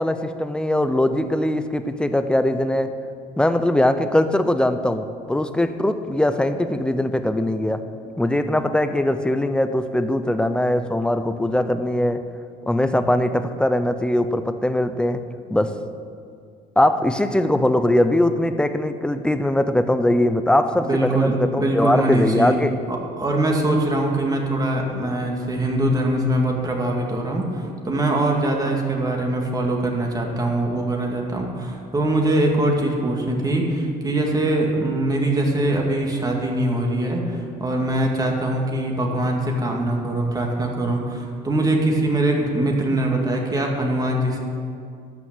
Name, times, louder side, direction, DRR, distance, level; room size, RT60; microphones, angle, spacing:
voice 1, 0.0-2.9 3.4-7.8 8.2-12.2 12.7-15.2 15.5-15.7 16.8-22.7, left 1 dB, 5° left, 9 dB, 0.6 m, -21 dB
voice 2, 20.8-22.6 22.9-44.4, right 1 dB, 20° right, 0 dB, 2.2 m, -22 dB
13.0 x 6.0 x 8.9 m, 2.3 s
cardioid pair, 110°, 17 cm